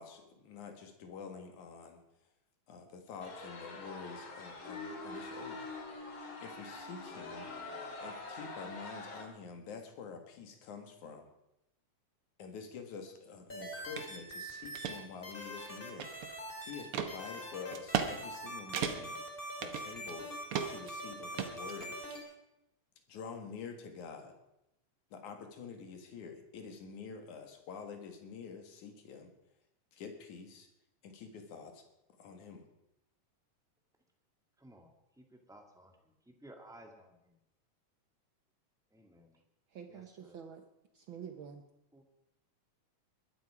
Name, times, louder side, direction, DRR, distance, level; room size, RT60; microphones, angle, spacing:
voice 1, 0.0-2.0 2.7-5.6 6.4-7.5 8.0-11.3 12.4-16.1 16.6-19.2 19.6-20.3 20.6-22.0 23.1-24.3 25.1-29.3 29.9-30.7 31.0-31.8 32.2-32.7, left 5 dB, 75° left, 6 dB, 3.2 m, -47 dB
sound 1, 3.2-9.3, left 3 dB, 45° left, 2.5 m, -45 dB
sound 2, 13.5-15.0 15.2-16.8 17.1-22.2, equal, 20° left, 2.6 m, -43 dB
sound 3, 14.0-14.1 14.5-15.0 15.5-16.4 16.9-17.1 17.7-18.1 18.4-18.5 18.7-19.2 19.6-20.2 20.5-20.9 21.4-22.2, right 8 dB, 55° right, 1.7 m, -36 dB
voice 2, 34.6-37.3 38.9-39.4 39.9-40.4 41.9-42.0, right 1 dB, ahead, 3 dB, 1.4 m, -57 dB
voice 3, 39.7-40.6 40.9-41.6, right 7 dB, 75° right, 6 dB, 1.1 m, -47 dB
21.0 x 12.0 x 4.9 m, 0.89 s
omnidirectional pair, 3.5 m